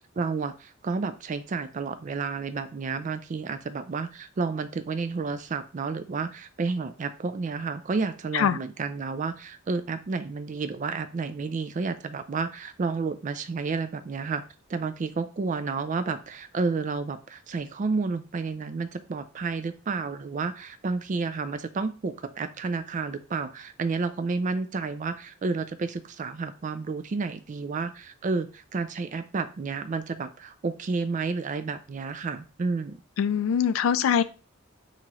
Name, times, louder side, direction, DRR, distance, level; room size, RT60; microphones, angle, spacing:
voice 1, 0.2-14.4 14.7-33.0, right 4 dB, 40° right, 10 dB, 0.4 m, -31 dB
voice 2, 33.2-34.2, left 8 dB, 80° left, 13 dB, 0.3 m, -23 dB
3.7 x 2.9 x 3.0 m, 0.33 s
head